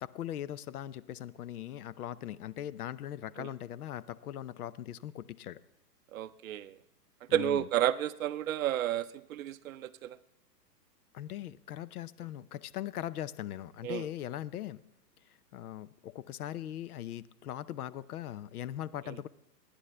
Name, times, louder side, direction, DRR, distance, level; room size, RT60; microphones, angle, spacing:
voice 1, 0.0-5.6 7.3-7.7 11.1-14.8 15.5-19.3, left 11 dB, 65° left, 17 dB, 0.6 m, -40 dB
voice 2, 6.1-6.7 7.3-10.2 13.8-14.1 19.1-19.2, right 11 dB, 55° right, 14 dB, 0.6 m, -31 dB
27.5 x 10.0 x 3.3 m, 0.82 s
hypercardioid pair, 145°, 49 cm